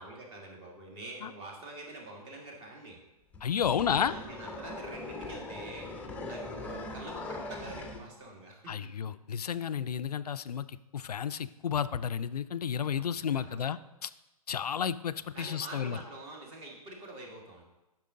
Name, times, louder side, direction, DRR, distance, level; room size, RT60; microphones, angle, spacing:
voice 1, 0.0-3.0 3.7-5.9 6.2-9.1 13.0-13.7 15.3-17.6, right 2 dB, 30° right, 1 dB, 1.8 m, -46 dB
sound 1, 3.3-8.0, left 2 dB, 10° left, 0.7 m, -41 dB
voice 2, 3.4-4.1 8.7-14.1 14.5-16.0, left 8 dB, 80° left, 14 dB, 0.4 m, -32 dB
8.5 x 6.1 x 3.7 m, 0.98 s
figure-of-eight pair, 120°, 20 cm